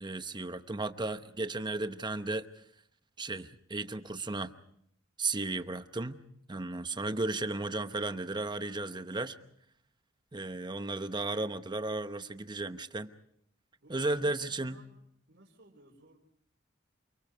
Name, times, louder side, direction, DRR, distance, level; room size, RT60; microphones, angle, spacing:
voice 1, 0.0-2.5 3.2-4.5 5.2-6.2 6.5-9.4 10.3-13.1 13.9-14.8, right 2 dB, 25° right, 10 dB, 0.9 m, -34 dB
voice 2, 13.8-15.0 15.3-16.2, right 1 dB, 65° right, -6 dB, 4.7 m, -58 dB
28.5 x 24.0 x 4.7 m, 0.69 s
head